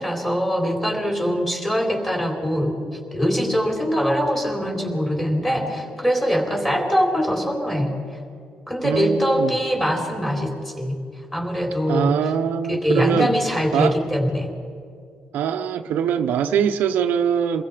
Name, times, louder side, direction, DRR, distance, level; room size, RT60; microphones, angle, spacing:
voice 1, 0.0-2.8 3.1-7.9 8.7-11.0 11.3-12.1 12.7-14.5, equal, 10° left, 0 dB, 4.1 m, -22 dB
voice 2, 8.8-9.6 11.9-13.3 13.7-14.0 15.3-17.6, right 8 dB, 75° right, 6 dB, 0.9 m, -22 dB
28.5 x 21.5 x 5.1 m, 2.4 s
cardioid pair, 165°, 3 cm